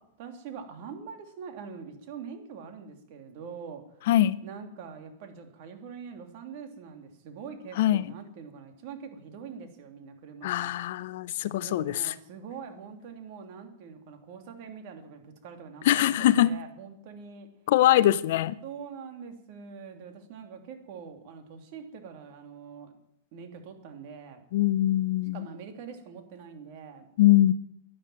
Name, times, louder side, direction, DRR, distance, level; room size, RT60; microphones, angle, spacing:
voice 1, 0.2-4.0 4.4-10.8 11.6-17.5 18.6-22.9 23.3-24.5 25.3-27.1, right 6 dB, 50° right, 3.0 m, -44 dB
voice 2, 4.1-4.4 7.8-8.0 10.4-12.1 15.8-16.5 17.7-18.6 24.5-25.5 27.2-27.5, left 14 dB, 65° left, 0.6 m, -22 dB
11.0 x 11.0 x 9.1 m
hypercardioid pair, 140°, 0 cm